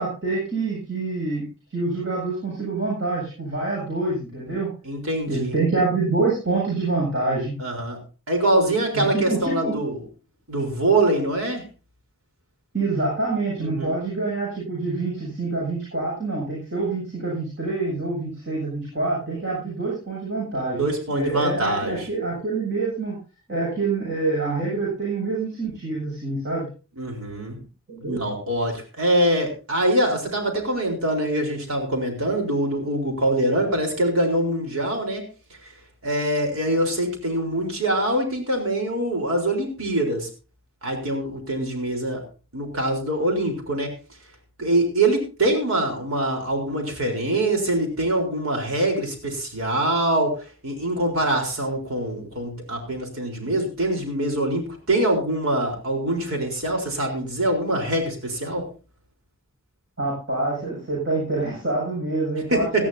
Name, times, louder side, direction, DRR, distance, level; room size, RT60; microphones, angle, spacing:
voice 1, 0.0-4.7 5.3-7.6 8.9-9.7 12.7-23.2 23.5-26.7 27.9-28.2 60.0-62.9, right 3 dB, 60° right, -5 dB, 7.3 m, -26 dB
voice 2, 4.8-5.5 7.6-8.0 8.3-10.0 10.5-11.7 13.6-13.9 20.8-22.1 27.0-27.6 28.1-35.2 36.0-40.3 40.8-42.2 42.5-43.9 44.6-50.4 50.6-58.7 62.5-62.9, right 1 dB, 85° right, 2 dB, 4.2 m, -24 dB
18.5 x 13.5 x 2.8 m, 0.34 s
head